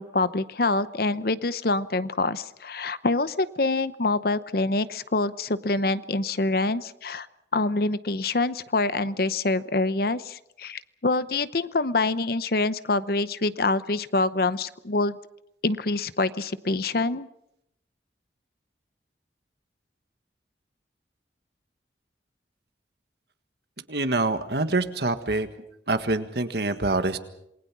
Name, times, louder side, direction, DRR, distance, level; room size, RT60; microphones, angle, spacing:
voice 1, 0.0-7.3 7.5-15.2 15.6-17.3, left 3 dB, 55° left, 15 dB, 0.8 m, -26 dB
voice 2, 23.9-25.5 25.9-27.2, right 2 dB, 60° right, 9 dB, 1.6 m, -25 dB
27.5 x 21.0 x 6.1 m, 0.79 s
head